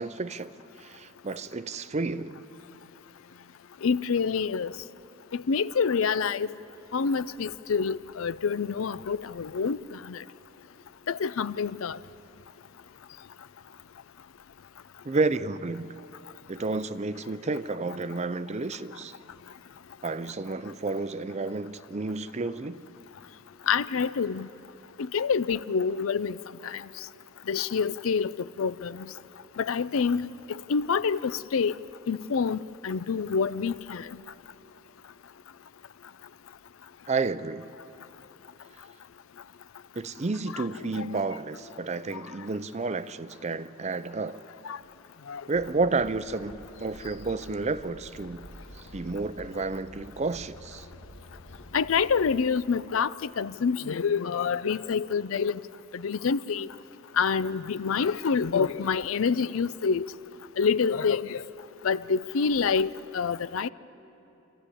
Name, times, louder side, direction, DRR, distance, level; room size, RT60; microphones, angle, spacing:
voice 1, 0.0-2.4 15.0-16.0 16.5-19.1 20.0-22.8 37.1-37.7 40.0-44.4 45.5-48.5 48.8-50.9, right 3 dB, 35° right, 0.5 m, -31 dB
voice 2, 3.8-4.7 5.3-6.5 6.9-10.2 11.1-12.0 23.7-24.5 25.1-26.4 26.6-26.8 27.5-29.1 29.6-31.8 32.1-34.1 40.5-40.7 40.9-41.1 44.6-44.8 45.3-45.4 51.7-55.6 55.9-56.7 57.2-60.1 60.6-61.4 61.8-63.7, left 5 dB, 75° left, 0.5 m, -27 dB
sound 1, 45.5-52.4, equal, 60° left, 1.6 m, -48 dB
26.5 x 14.5 x 9.9 m
head